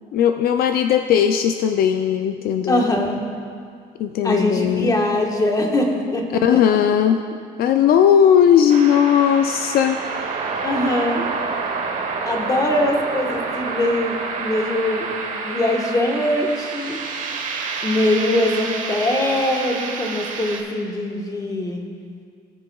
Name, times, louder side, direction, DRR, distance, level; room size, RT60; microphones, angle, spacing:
voice 1, 0.1-2.9 4.0-5.0 6.4-7.2 7.6-10.0 10.3-10.5, left 9 dB, 65° left, 7 dB, 0.4 m, -17 dB
voice 2, 2.7-3.2 4.2-6.6 10.6-11.3 12.2-15.1 15.4-17.0 17.8-21.8, left 1 dB, 20° left, 1 dB, 1.2 m, -22 dB
sound 1, 8.7-20.6, right 4 dB, 50° right, 1.1 m, -28 dB
17.5 x 6.7 x 2.3 m, 2.2 s
cardioid pair, 110°, 17 cm